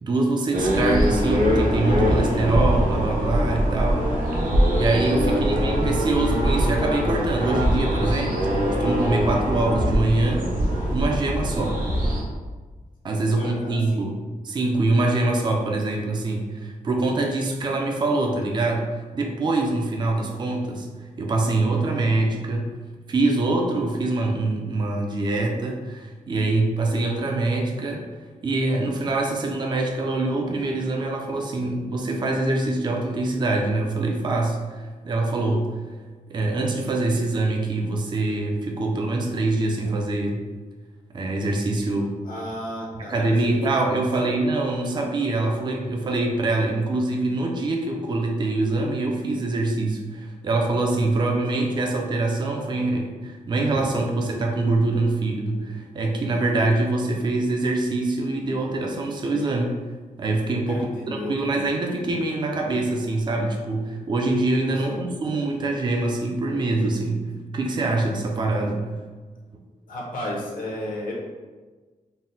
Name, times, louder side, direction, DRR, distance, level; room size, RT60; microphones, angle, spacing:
voice 1, 0.0-10.5 10.9-11.8 13.0-22.7 23.1-28.1 28.4-35.7 36.3-40.4 41.1-42.1 42.9-59.8 60.2-67.3 67.5-68.8, right 2 dB, 30° right, 1 dB, 0.4 m, -24 dB
sound 1, 0.5-12.2, equal, 85° right, 0.7 m, -22 dB
voice 2, 5.2-5.7 13.3-14.1 42.2-43.3 43.7-43.8 44.2-44.4 51.2-51.6 60.7-61.7 64.8-65.1 69.9-71.1, left 1 dB, 75° left, -3 dB, 0.8 m, -34 dB
3.9 x 2.1 x 3.8 m, 1.4 s
wide cardioid pair, 180°, 14 cm